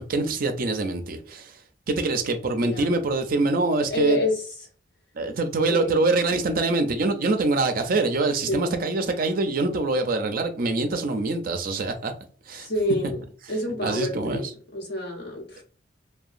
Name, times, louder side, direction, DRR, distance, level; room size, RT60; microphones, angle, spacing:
voice 1, 0.0-1.6 1.9-4.2 5.1-12.1 12.5-12.7 13.8-14.5, right 3 dB, 50° right, 0.4 m, -24 dB
voice 2, 2.6-2.9 3.9-4.4 5.7-6.0 8.5-8.9 12.6-13.2 13.5-14.5 14.7-15.6, left 1 dB, 65° left, 1.0 m, -28 dB
2.8 x 2.2 x 2.4 m
head